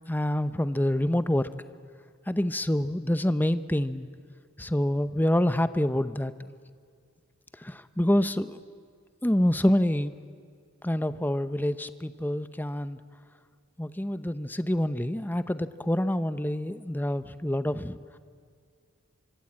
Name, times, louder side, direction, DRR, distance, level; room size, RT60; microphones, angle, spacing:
voice 1, 0.1-1.5 2.3-4.1 4.6-6.3 7.6-8.6 9.2-10.1 10.8-13.0 13.8-18.0, left 1 dB, 10° left, 12 dB, 0.8 m, -26 dB
25.0 x 24.5 x 8.7 m, 2.1 s
head